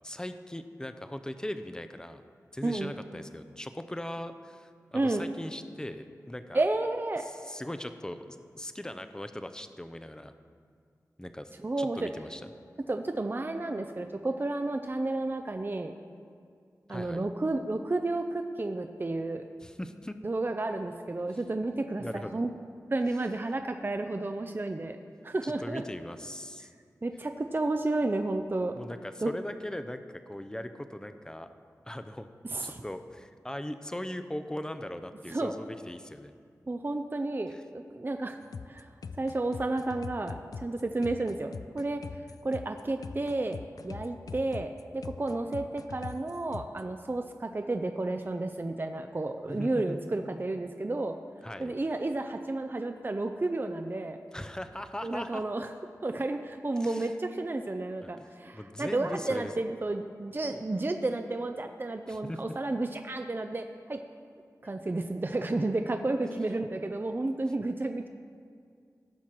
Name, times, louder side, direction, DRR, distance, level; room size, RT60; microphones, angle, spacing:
voice 1, 0.0-2.2 2.5-6.6 7.2-10.3 11.2-11.5 11.8-12.5 16.9-17.2 19.6-20.2 21.3-21.6 22.0-22.3 25.4-26.7 28.8-31.5 31.9-32.3 32.6-36.4 37.5-37.6 49.5-50.1 51.4-51.7 54.3-55.4 56.8-57.1 58.0-59.5 62.1-62.4 64.6-64.7 66.2-66.6, left 1 dB, 10° left, 9 dB, 0.6 m, -39 dB
voice 2, 2.6-2.9 4.9-5.2 6.5-7.3 11.6-12.1 12.9-15.9 16.9-19.4 20.2-22.5 22.9-25.0 25.2-25.8 27.0-28.7 29.2-29.3 32.5-32.8 35.3-35.5 36.7-38.4 38.7-38.9 39.2-40.3 40.6-42.0 42.4-43.6 43.8-51.2 51.6-54.2 55.0-55.7 56.0-64.0 64.6-68.1, right 2 dB, 35° right, 6 dB, 0.6 m, -31 dB
sound 1, 38.4-46.8, left 5 dB, 70° left, 0.4 m, -42 dB
16.0 x 5.8 x 4.5 m, 2.2 s
cardioid pair, 40°, 6 cm